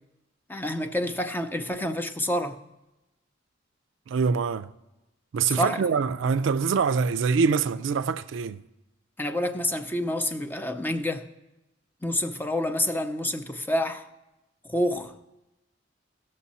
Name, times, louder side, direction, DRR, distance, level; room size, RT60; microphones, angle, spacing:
voice 1, 0.5-2.6 5.6-5.8 9.2-11.2 12.0-14.1 14.6-15.1, left 1 dB, 10° left, 0.5 m, -28 dB
voice 2, 4.1-4.7 5.3-8.6, right 5 dB, 70° right, 0.4 m, -24 dB
16.5 x 6.5 x 4.1 m
head